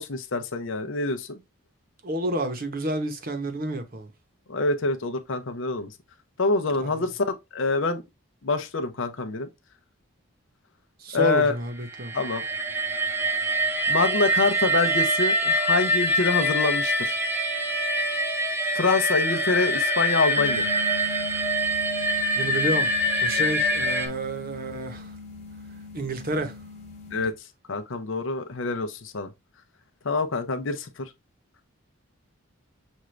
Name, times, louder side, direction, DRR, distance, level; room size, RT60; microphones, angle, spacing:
voice 1, 0.0-1.3 4.5-5.9 6.4-7.3 7.5-8.0 8.4-9.5 11.1-11.5 12.1-12.4 13.9-17.2 18.7-20.7 27.1-27.3 27.7-29.3 30.0-31.1, left 3 dB, 65° left, 0.6 m, -26 dB
voice 2, 2.0-4.1 6.8-7.0 11.0-12.1 22.4-25.1 25.9-26.6, right 1 dB, 45° right, 0.9 m, -30 dB
sound 1, 11.8-24.1, equal, 10° right, 0.6 m, -25 dB
sound 2, 20.4-27.3, left 4 dB, 35° left, 1.1 m, -40 dB
6.2 x 2.5 x 3.2 m
head